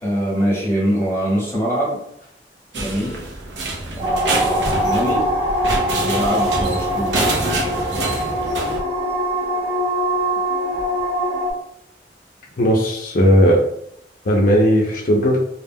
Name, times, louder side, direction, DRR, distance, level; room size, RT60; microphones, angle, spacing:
voice 1, 0.0-2.0 2.7-3.2 4.0-5.3 6.0-7.3, equal, 15° left, -6 dB, 0.8 m, -23 dB
sound 1, 2.7-8.8, right 2 dB, 90° right, 0.5 m, -26 dB
sound 2, 4.0-11.5, equal, 35° right, 0.7 m, -22 dB
voice 2, 12.6-13.6 14.3-15.4, equal, 50° left, -1 dB, 0.4 m, -16 dB
2.3 x 2.1 x 3.4 m, 0.73 s
head